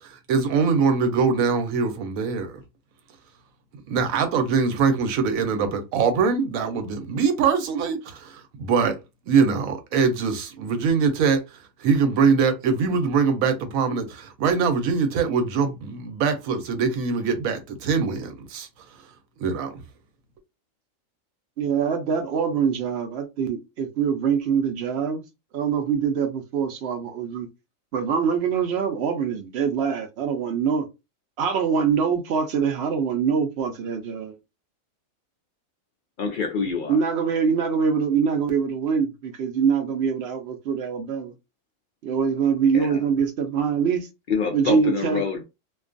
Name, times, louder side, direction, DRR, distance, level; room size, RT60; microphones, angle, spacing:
voice 1, 0.0-2.6 3.9-9.0 9.3-11.4 11.8-18.7 19.4-19.8, right 5 dB, 85° right, 1.0 m, -23 dB
voice 2, 21.6-25.2 25.5-27.5 27.9-30.9 31.4-34.3 36.9-41.3 42.0-44.1 44.5-45.2, right 6 dB, 65° right, 0.7 m, -24 dB
voice 3, 36.2-37.0 42.7-43.0 44.3-45.4, left 5 dB, 80° left, 0.4 m, -26 dB
2.4 x 2.3 x 2.5 m
omnidirectional pair, 1.4 m